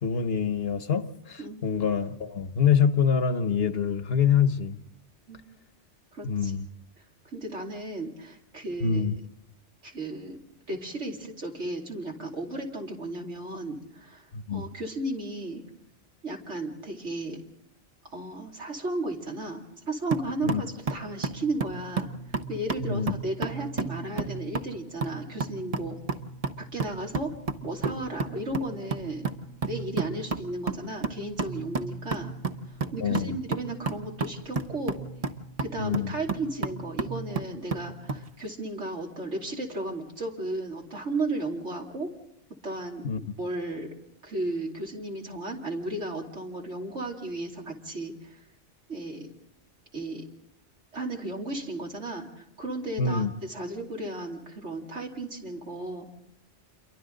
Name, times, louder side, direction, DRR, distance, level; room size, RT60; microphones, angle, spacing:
voice 1, 0.0-4.8 6.2-6.7 8.8-9.1 14.3-14.6 20.4-20.6 22.8-23.2 33.0-33.3 35.8-36.1 43.0-43.2 53.0-53.3, left 7 dB, 60° left, 10 dB, 1.2 m, -25 dB
voice 2, 6.1-6.5 7.3-9.0 9.8-10.4 10.7-15.6 16.2-17.4 18.1-22.1 22.5-26.0 26.6-27.3 27.6-29.3 29.7-32.3 32.9-35.0 35.6-42.1 42.6-43.1 43.4-43.9 44.2-48.4 48.9-49.3 49.9-50.2 50.9-56.1, right 2 dB, 75° right, 0 dB, 3.2 m, -34 dB
sound 1, 20.1-38.3, right 4 dB, 35° right, 0.9 m, -33 dB
28.5 x 23.0 x 3.9 m, 0.79 s
omnidirectional pair, 1.2 m